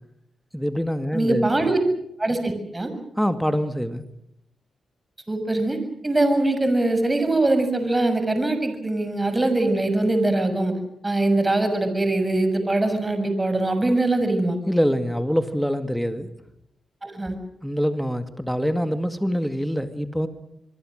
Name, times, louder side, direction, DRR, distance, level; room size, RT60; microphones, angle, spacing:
voice 1, 0.5-1.5 3.2-4.1 14.7-16.3 17.6-20.3, equal, ahead, 9 dB, 2.1 m, -24 dB
voice 2, 1.1-1.8 2.2-2.9 5.3-5.8 6.0-10.7 11.0-14.6 17.0-17.4, right 2 dB, 25° right, 7 dB, 6.6 m, -22 dB
25.5 x 23.5 x 6.5 m, 0.79 s
hypercardioid pair, 40°, 0 cm